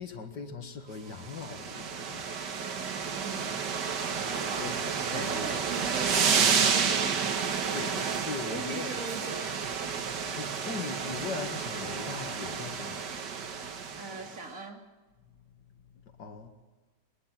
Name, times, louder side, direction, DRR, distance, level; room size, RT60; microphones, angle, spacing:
voice 1, 0.0-2.4 4.6-5.6 7.7-8.9 10.3-13.5 15.9-16.5, left 5 dB, 85° left, 6 dB, 2.4 m, -40 dB
sound 1, 1.1-14.4, right 6 dB, 80° right, 2.0 m, -30 dB
voice 2, 3.2-3.8 4.3-4.8 5.1-7.2 8.5-9.5 14.0-14.8, right 4 dB, 50° right, 3 dB, 2.9 m, -40 dB
22.5 x 20.0 x 6.1 m, 1.3 s
omnidirectional pair, 1.8 m